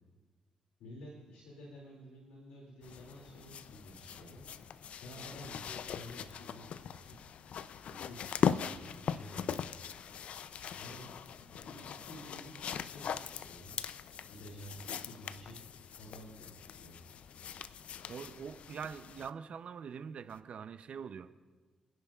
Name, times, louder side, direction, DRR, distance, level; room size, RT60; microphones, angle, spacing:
voice 1, 0.8-4.5 5.0-7.2 7.9-9.8 10.7-13.8 14.3-15.6 15.9-17.0, equal, 85° left, -2 dB, 2.5 m, -51 dB
sound 1, 2.8-19.3 20.3-20.4, left 8 dB, 70° left, 0.4 m, -40 dB
voice 2, 18.1-21.3, right 7 dB, 65° right, 12 dB, 0.6 m, -44 dB
27.5 x 10.5 x 2.4 m, 1.3 s
hypercardioid pair, 45°, 2 cm